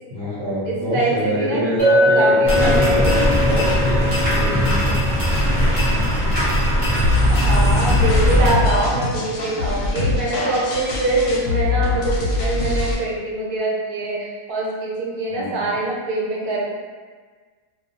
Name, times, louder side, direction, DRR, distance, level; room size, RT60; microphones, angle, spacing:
voice 1, 0.1-4.9 15.3-15.7, equal, 55° right, -12 dB, 0.8 m, -25 dB
voice 2, 0.6-1.7 2.1-3.4 7.3-16.7, right 2 dB, 85° right, -3 dB, 1.1 m, -24 dB
Chink clink, 1.8-6.0, left 1 dB, 35° left, 0.8 m, -21 dB
sound 1, 2.4-8.5, equal, 35° right, 0.4 m, -19 dB
sound 2, 7.0-13.0, left 2 dB, 70° left, 0.9 m, -22 dB
2.3 x 2.3 x 2.6 m, 1.5 s
omnidirectional pair, 1.6 m